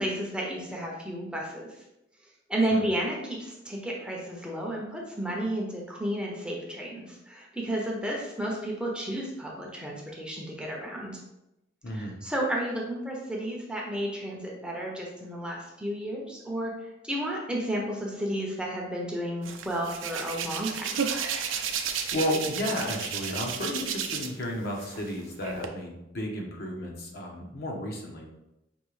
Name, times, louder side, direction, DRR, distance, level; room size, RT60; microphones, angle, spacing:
voice 1, 0.0-1.8 2.5-11.2 11.9-16.7 17.0-21.0, right 1 dB, 5° right, -2 dB, 0.7 m, -32 dB
voice 2, 11.8-12.1 21.8-28.3, left 1 dB, 50° left, 0 dB, 0.9 m, -33 dB
Hands, 19.4-24.4 24.8-25.7, right 7 dB, 75° right, 0.5 m, -33 dB
5.4 x 2.8 x 3.2 m, 0.89 s
head